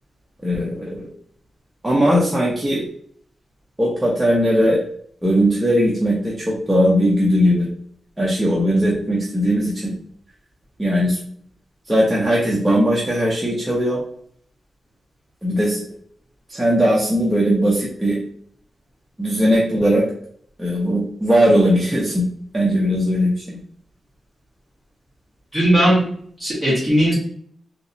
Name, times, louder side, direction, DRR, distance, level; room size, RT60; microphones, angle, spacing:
voice 1, 0.4-1.1 1.8-2.8 3.8-4.8 5.2-7.7 8.2-9.9 10.8-11.2 11.9-14.0 15.4-15.8 16.5-18.2 19.2-20.1 20.6-22.3 22.5-23.4, equal, 10° right, -5 dB, 0.5 m, -18 dB
voice 2, 25.5-26.0 26.4-27.1, equal, 15° left, -9 dB, 1.4 m, -17 dB
3.1 x 2.8 x 2.6 m, 0.62 s
wide cardioid pair, 175°, 0 cm